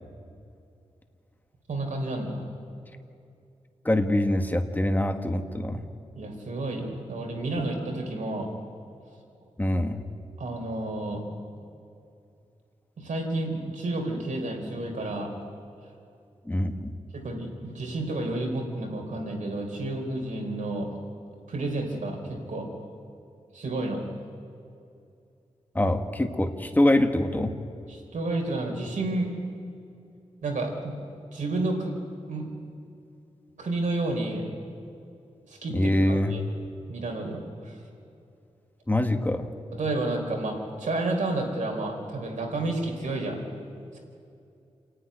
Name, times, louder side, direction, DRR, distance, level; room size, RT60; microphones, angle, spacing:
voice 1, 1.7-2.4 6.1-8.5 10.4-11.2 13.0-15.3 17.1-20.9 21.5-22.7 23.5-24.0 27.9-29.3 30.4-31.0 31.3-31.9 32.3-32.5 33.6-34.5 35.5-35.8 36.1-36.4 36.9-37.8 39.7-43.4, right 2 dB, 80° right, 2 dB, 3.9 m, -30 dB
voice 2, 3.8-5.8 9.6-10.0 16.5-16.9 25.7-27.5 35.7-36.4 38.9-39.5, left 1 dB, 15° left, 6 dB, 1.4 m, -24 dB
27.5 x 10.0 x 9.7 m, 2.6 s
wide cardioid pair, 110°, 13 cm